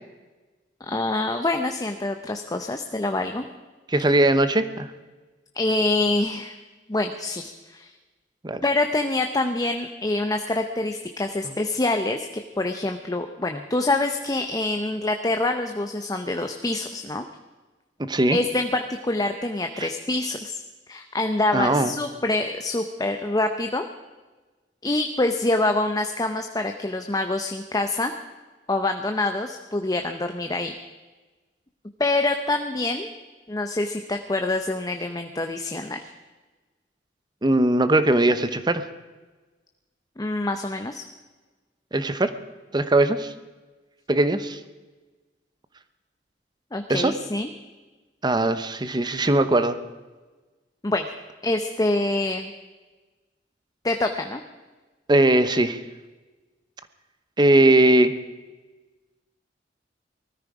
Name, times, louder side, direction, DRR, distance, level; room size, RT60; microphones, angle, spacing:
voice 1, 0.8-3.4 5.5-6.6 6.9-7.9 8.6-12.3 12.6-17.2 18.3-20.6 20.9-23.8 24.8-28.1 28.7-30.7 32.0-33.1 33.5-36.0 40.2-41.0 46.7-47.5 50.8-51.1 51.4-52.5 53.8-54.4, left 2 dB, 20° left, 6 dB, 0.7 m, -25 dB
voice 2, 3.9-4.9 8.4-8.6 18.0-18.4 21.5-21.9 37.4-38.8 41.9-42.3 42.7-43.3 44.1-44.6 46.9-47.1 48.2-49.8 55.1-55.8 57.4-58.1, right 1 dB, 25° right, 12 dB, 0.8 m, -20 dB
19.5 x 13.5 x 4.9 m, 1.3 s
head